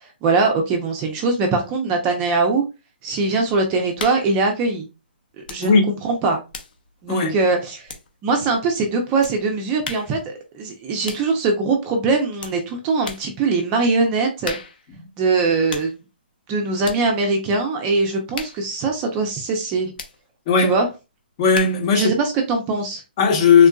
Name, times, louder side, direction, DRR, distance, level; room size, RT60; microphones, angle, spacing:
voice 1, 0.0-2.6 3.0-4.9 5.5-5.8 6.0-6.4 7.0-7.9 8.2-14.6 15.2-16.0 16.5-19.9 20.6-20.9 21.9-23.0, right 3 dB, 20° right, 0.5 m, -21 dB
sound 1, 4.0-4.4 5.4-5.7 6.0-8.4 9.2-9.4 9.8-10.2 11.0-11.3 12.4-12.6 13.0-13.3 14.4-14.9 15.7-16.0 16.8-17.1 18.3-18.7 20.0-20.2 21.5-21.9, left 5 dB, 60° left, 0.8 m, -35 dB
voice 2, 20.5-20.8 21.4-22.2 23.2-23.7, left 5 dB, 30° left, 0.9 m, -16 dB
3.6 x 2.5 x 2.3 m
hypercardioid pair, 160°, 6 cm